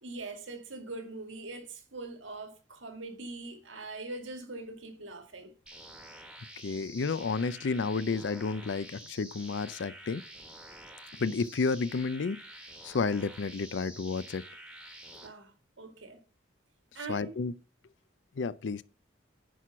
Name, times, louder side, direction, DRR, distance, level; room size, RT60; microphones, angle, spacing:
voice 1, 0.0-5.5 15.1-16.2 16.9-17.4, right 2 dB, 85° right, 1.9 m, -42 dB
sound 1, 5.7-15.3, right 1 dB, 5° right, 1.3 m, -49 dB
voice 2, 6.6-10.2 11.1-12.4 12.8-14.4 17.1-17.5 18.4-18.8, left 4 dB, 70° left, 0.5 m, -31 dB
10.0 x 4.6 x 5.9 m
head